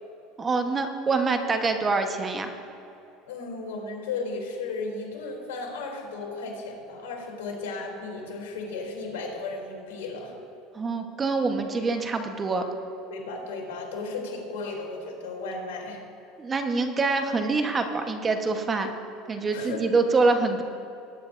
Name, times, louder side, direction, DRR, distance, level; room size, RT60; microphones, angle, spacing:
voice 1, 0.4-2.5 10.7-12.6 16.4-18.9 19.3-20.6, right 3 dB, 25° right, 6 dB, 1.1 m, -25 dB
voice 2, 3.3-10.3 13.1-16.0 19.5-19.9, left 3 dB, 90° left, -1 dB, 3.0 m, -35 dB
20.0 x 9.7 x 2.6 m, 2.8 s
supercardioid pair, 105°, 0 cm